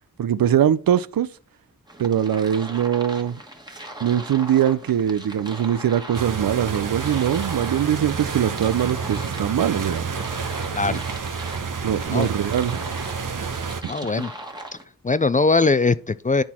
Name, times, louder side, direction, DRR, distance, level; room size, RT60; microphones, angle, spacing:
voice 1, 0.2-1.3 2.0-3.4 4.0-10.1 10.9-11.0 11.8-12.8 14.2-14.3, right 10 dB, 85° right, 0.5 m, -22 dB
sound 1, 1.9-14.8, right 1 dB, 10° right, 1.4 m, -40 dB
sound 2, 6.1-13.8, right 5 dB, 65° right, 0.8 m, -29 dB
voice 2, 13.9-14.3 15.0-16.4, left 3 dB, 25° left, 0.3 m, -20 dB
10.5 x 4.1 x 4.3 m
wide cardioid pair, 65°, 34 cm